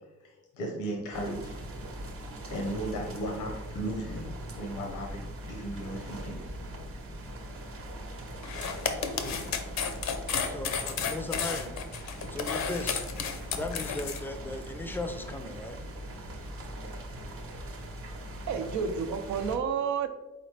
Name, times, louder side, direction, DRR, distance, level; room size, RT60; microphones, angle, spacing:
voice 1, 0.2-1.5 2.5-6.4 9.2-9.6, right 1 dB, 90° left, -1 dB, 0.9 m, -36 dB
sound 1, 1.1-19.6, right 1 dB, 45° right, 0.9 m, -41 dB
voice 2, 8.1-9.4 10.3-11.7 12.3-13.0 13.5-15.8, left 2 dB, 5° left, 7 dB, 0.5 m, -38 dB
sound 2, 8.4-14.2, left 7 dB, 65° left, 0.6 m, -32 dB
voice 3, 18.5-20.1, right 6 dB, 70° right, 7 dB, 0.6 m, -30 dB
4.1 x 3.9 x 3.3 m, 1.0 s
cardioid pair, 90°, 30 cm